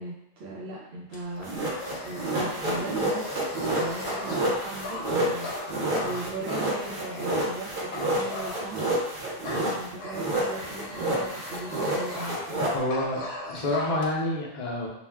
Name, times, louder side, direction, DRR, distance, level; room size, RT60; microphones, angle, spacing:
voice 1, 0.0-1.6 2.0-3.5 3.8-5.5 6.0-9.0 9.5-12.4, right 2 dB, 85° right, -6 dB, 0.9 m, -38 dB
Dog, 1.1-7.3 7.9-9.0 9.4-12.6 12.9-14.1, left 2 dB, 85° left, 0.9 m, -39 dB
sound 1, 1.4-9.9 10.1-12.7, right 1 dB, 55° right, 0.9 m, -29 dB
voice 2, 12.7-13.2 13.5-14.9, left 1 dB, 50° left, -2 dB, 0.6 m, -28 dB
2.4 x 2.2 x 3.3 m, 0.84 s
omnidirectional pair, 1.0 m